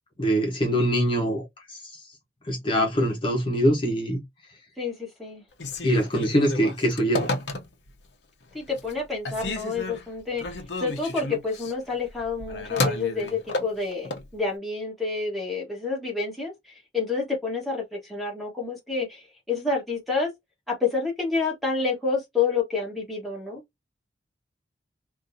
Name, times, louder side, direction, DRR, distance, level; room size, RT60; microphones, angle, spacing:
voice 1, 0.2-2.0 2.5-4.2 5.8-7.3, equal, 30° left, 1.1 m, -23 dB
voice 2, 4.8-5.4 8.5-10.4 10.8-20.3 20.7-23.6, left 4 dB, ahead, 1.4 m, -29 dB
Telephone, 5.5-8.0 8.5-9.0 9.2-14.3, left 2 dB, 85° left, 0.8 m, -32 dB
3.8 x 2.7 x 2.6 m
head